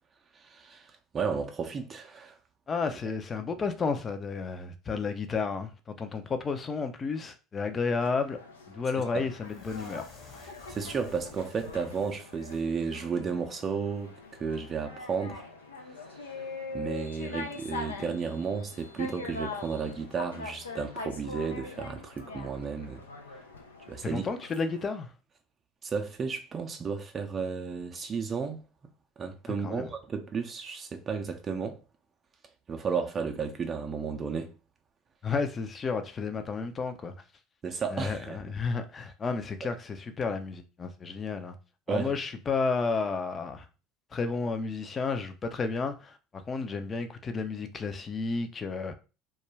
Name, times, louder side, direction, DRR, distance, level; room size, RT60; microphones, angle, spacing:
voice 1, 0.3-2.4 9.0-9.3 10.7-15.5 16.1-16.3 16.7-23.0 23.9-24.2 25.8-28.6 29.2-31.8 32.7-34.5 37.6-38.4 39.6-39.7 41.9-42.1, right 5 dB, 35° right, 0.4 m, -33 dB
voice 2, 2.7-8.4 8.7-10.1 24.0-25.1 29.6-29.9 35.2-37.1 37.9-41.6 41.9-43.7 44.1-48.9, left 4 dB, 30° left, 0.5 m, -32 dB
sound 1, 8.0-24.8, left 3 dB, 85° left, 0.4 m, -43 dB
sound 2, 9.5-12.7 12.9-13.1 13.4-13.6, left 3 dB, 45° left, 1.3 m, -52 dB
2.3 x 2.2 x 3.2 m
hypercardioid pair, 70°, 0 cm